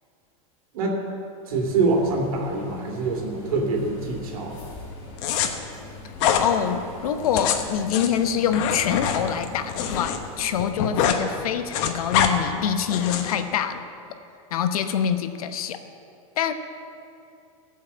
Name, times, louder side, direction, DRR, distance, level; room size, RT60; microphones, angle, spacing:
sound 1, 1.5-10.5, left 2 dB, 35° left, 3.3 m, -42 dB
voice 1, 1.5-4.6, right 3 dB, 80° right, 1 dB, 2.7 m, -25 dB
sound 2, 5.2-5.5 6.2-6.5 7.2-10.2 10.5-11.2 11.5-12.3 12.9-13.4, left 8 dB, 55° left, 1.1 m, -24 dB
voice 2, 6.4-13.8 14.5-15.8 16.4-16.5, left 8 dB, 85° left, 9 dB, 0.9 m, -25 dB
15.0 x 5.8 x 7.4 m, 2.6 s
supercardioid pair, 135°, 18 cm